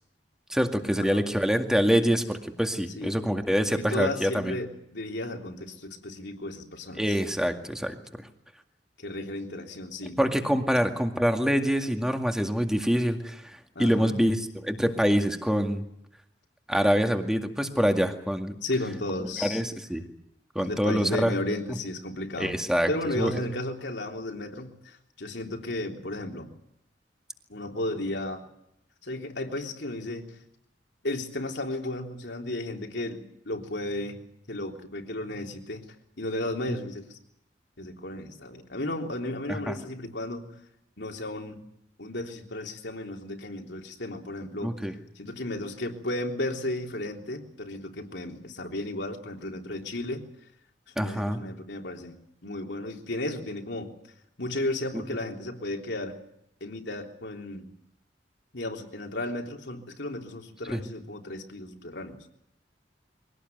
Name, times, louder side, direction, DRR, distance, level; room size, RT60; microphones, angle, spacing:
voice 1, 0.5-4.6 7.0-8.0 10.2-15.8 16.7-18.5 19.4-20.0 20.6-21.3 22.4-22.9 23.2-23.3 39.5-39.7 44.6-44.9 51.0-51.4 60.7-60.8, equal, 5° right, 5 dB, 2.1 m, -25 dB
voice 2, 3.7-7.0 9.0-10.2 13.8-14.2 18.6-19.6 20.6-22.6 22.9-26.5 27.5-28.4 29.0-30.4 31.0-34.2 34.5-35.8 36.2-37.2 37.8-40.6 41.0-41.6 42.0-44.7 45.2-50.2 51.0-52.2 52.4-53.9 54.4-56.2 56.6-57.7 58.5-62.2, left 1 dB, 70° left, 3 dB, 3.6 m, -34 dB
23.5 x 18.0 x 9.4 m, 0.78 s
head